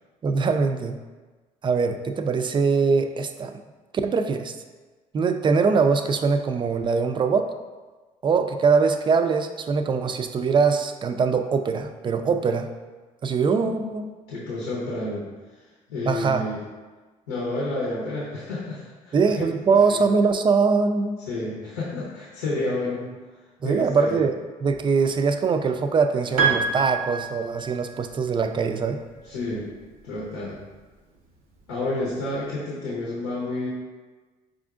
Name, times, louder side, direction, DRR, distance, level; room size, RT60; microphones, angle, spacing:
voice 1, 0.2-1.0 1.6-3.6 4.0-4.5 5.1-7.5 8.2-12.7 13.2-14.1 16.1-16.5 19.1-21.2 23.6-24.4 24.6-29.0, right 5 dB, 25° right, 7 dB, 0.3 m, -22 dB
voice 2, 14.3-15.3 15.9-16.6 17.3-19.4 19.7-20.0 21.3-23.1 23.6-24.2 29.2-29.7 30.0-30.6 31.7-33.7, left 2 dB, 90° left, -7 dB, 0.7 m, -30 dB
Piano, 26.4-28.1, right 5 dB, 85° right, 0.7 m, -25 dB
4.8 x 2.5 x 2.4 m, 1.3 s
hypercardioid pair, 60°, 18 cm